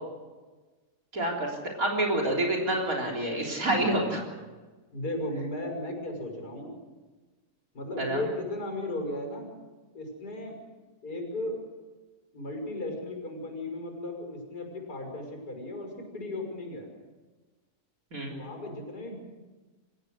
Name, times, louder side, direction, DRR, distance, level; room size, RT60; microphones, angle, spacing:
voice 1, 1.1-4.2 8.0-8.2 18.1-18.3, right 1 dB, 60° right, -1 dB, 4.1 m, -28 dB
voice 2, 3.7-4.1 4.9-6.8 7.7-9.5 9.9-10.6 11.0-11.6 12.3-16.9 18.3-19.2, left 1 dB, 80° left, 2 dB, 6.5 m, -35 dB
28.0 x 15.5 x 6.6 m, 1.3 s
omnidirectional pair, 1.6 m